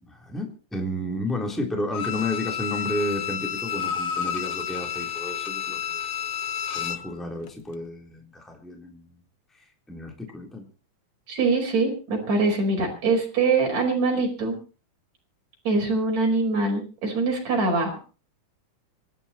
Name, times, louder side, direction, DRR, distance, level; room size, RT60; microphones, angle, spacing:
voice 1, 0.0-6.1 6.7-9.2 9.5-10.7, left 1 dB, ahead, 2 dB, 3.3 m, -32 dB
Bowed string instrument, 1.9-7.1 7.5-7.6, left 8 dB, 75° left, 1.2 m, -30 dB
voice 2, 11.3-14.6 15.6-18.0, right 3 dB, 60° right, 1 dB, 6.4 m, -23 dB
25.5 x 11.0 x 4.3 m, 0.35 s
omnidirectional pair, 3.5 m